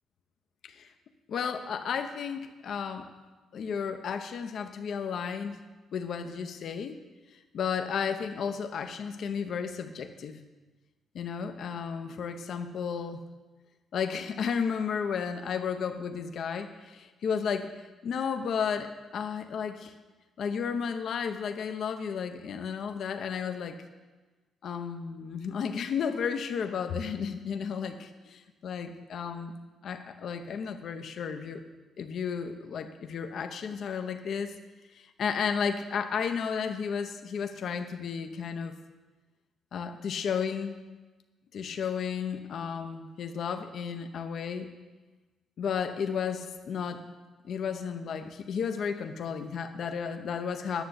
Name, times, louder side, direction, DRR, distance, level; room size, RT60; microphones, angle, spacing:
voice 1, 1.3-3.1 3.5-5.6 5.9-7.0 7.3-10.5 11.1-13.2 13.9-19.9 20.4-23.8 24.6-29.5 29.8-31.6 32.0-34.5 34.9-38.7 39.7-40.8 41.5-44.7 45.6-47.1 47.4-50.8, left 6 dB, 65° left, 6 dB, 0.8 m, -33 dB
10.0 x 6.8 x 8.2 m, 1.2 s
cardioid pair, 90°, 0 cm